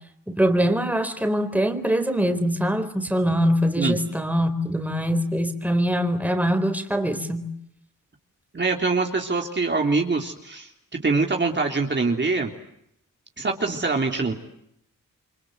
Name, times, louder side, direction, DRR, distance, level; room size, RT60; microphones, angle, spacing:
voice 1, 0.3-7.5, equal, 5° right, 7 dB, 4.3 m, -23 dB
voice 2, 8.5-10.7 11.0-12.5 13.4-14.3, right 3 dB, 35° right, 2 dB, 3.4 m, -24 dB
29.5 x 25.0 x 8.0 m, 0.75 s
cardioid pair, 100°, 33 cm